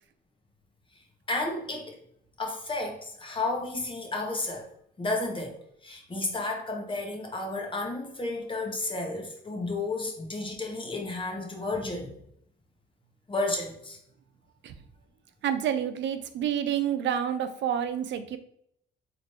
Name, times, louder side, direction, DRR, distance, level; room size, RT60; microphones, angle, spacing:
voice 1, 1.3-1.9 2.4-4.7 5.0-5.6 5.8-12.1 13.3-14.0, left 2 dB, 25° left, 0 dB, 1.0 m, -32 dB
voice 2, 15.4-18.4, right 9 dB, 65° right, 10 dB, 0.5 m, -28 dB
4.0 x 3.2 x 2.8 m, 0.70 s
cardioid pair, 90°, 20 cm